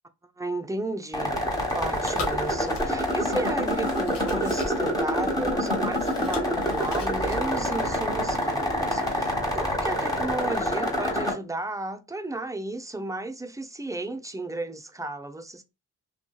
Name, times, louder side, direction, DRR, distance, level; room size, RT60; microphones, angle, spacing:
voice 1, 0.4-1.4 1.7-15.6, right 2 dB, 10° right, 0.4 m, -33 dB
sound 1, 1.1-11.3, equal, 10° left, 1.1 m, -27 dB
Chewing mastication, 1.3-7.9, left 2 dB, 85° left, 0.8 m, -40 dB
2.6 x 2.3 x 2.2 m
cardioid pair, 55°, 40 cm